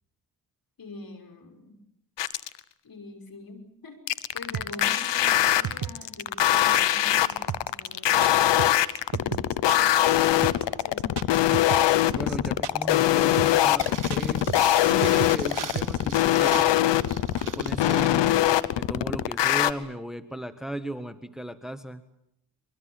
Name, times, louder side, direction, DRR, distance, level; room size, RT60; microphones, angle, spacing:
voice 1, 0.8-1.8 2.8-8.2 9.1-10.5 10.8-11.3, left 3 dB, 55° left, 7 dB, 5.8 m, -44 dB
sound 1, 2.2-2.6 4.1-19.7, left 13 dB, 85° left, 1.0 m, -22 dB
sound 2, 4.5-16.2, right 10 dB, 70° right, 1.1 m, -34 dB
voice 2, 12.1-16.7 17.4-18.4 18.7-22.0, right 1 dB, ahead, 11 dB, 1.6 m, -36 dB
sound 3, 13.7-18.2 18.4-18.5, right 6 dB, 45° right, 2.8 m, -40 dB
24.0 x 23.5 x 8.9 m, 0.79 s
cardioid pair, 55°, 42 cm